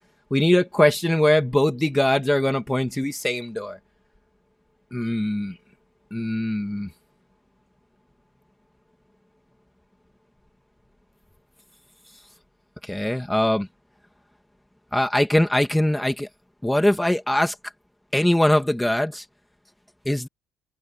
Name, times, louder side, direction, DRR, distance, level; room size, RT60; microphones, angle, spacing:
voice 1, 0.3-3.8 4.9-5.6 6.1-6.9 12.8-13.7 14.9-16.3 16.6-17.6 18.1-19.2 20.1-20.3, left 1 dB, 5° left, 2.0 m, -21 dB
cardioid pair, 160°, 0 cm